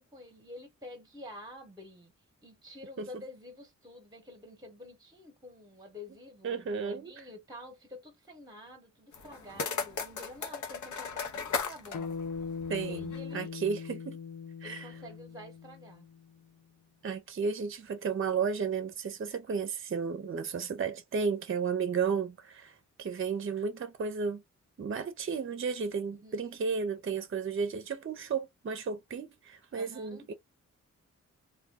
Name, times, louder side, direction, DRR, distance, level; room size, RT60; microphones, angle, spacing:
voice 1, 0.0-2.1 2.4-12.2 12.9-13.5 14.6-16.1 26.2-26.6 29.7-30.3, left 1 dB, 15° right, 0.9 m, -49 dB
voice 2, 6.4-7.1 12.7-14.2 14.6-14.9 17.0-24.4 24.8-30.3, right 5 dB, 45° right, 0.5 m, -33 dB
sound 1, 9.1-13.3, left 5 dB, 85° left, 0.7 m, -37 dB
Bass guitar, 11.9-16.4, left 5 dB, 50° left, 0.5 m, -40 dB
2.3 x 2.2 x 3.4 m
wide cardioid pair, 95°, 30 cm